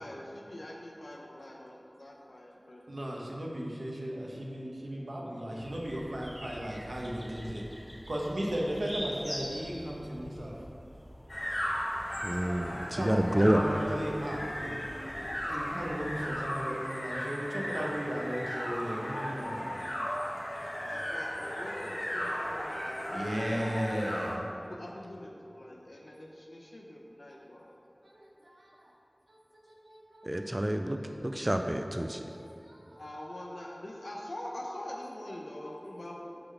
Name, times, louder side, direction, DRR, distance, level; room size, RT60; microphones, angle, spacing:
voice 1, 0.0-2.8 12.3-12.5 13.3-13.4 20.8-23.4 24.5-27.7 33.0-36.4, left 1 dB, 80° left, -1 dB, 0.6 m, -44 dB
voice 2, 2.6-7.6 8.1-10.5 12.9-19.8 23.1-24.4 28.0-28.9 29.3-29.4 29.8-30.8 31.2-31.3 32.0-33.0 35.7-35.8, equal, 90° right, -3 dB, 1.0 m, -36 dB
sound 1, 5.6-16.3, equal, 5° right, 1.4 m, -46 dB
sound 2, 11.3-24.4, equal, 55° left, 1.2 m, -36 dB
voice 3, 12.2-13.6 30.2-32.2, right 1 dB, 20° right, 5 dB, 0.3 m, -28 dB
6.7 x 3.9 x 5.5 m, 2.7 s
wide cardioid pair, 50°, 0 cm